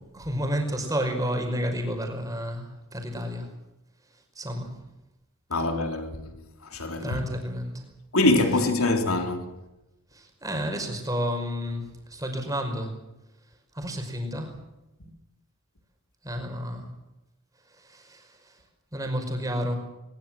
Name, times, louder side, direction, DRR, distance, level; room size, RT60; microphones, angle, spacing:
voice 1, 0.1-3.5 4.4-4.7 7.0-7.8 10.1-12.9 13.8-14.5 16.2-16.9 17.8-18.4 18.9-19.8, equal, 15° right, 5.4 m, -31 dB
voice 2, 5.5-6.3 6.7-7.2 8.1-9.4, left 2 dB, 85° left, 3.7 m, -24 dB
21.5 x 21.0 x 7.7 m
head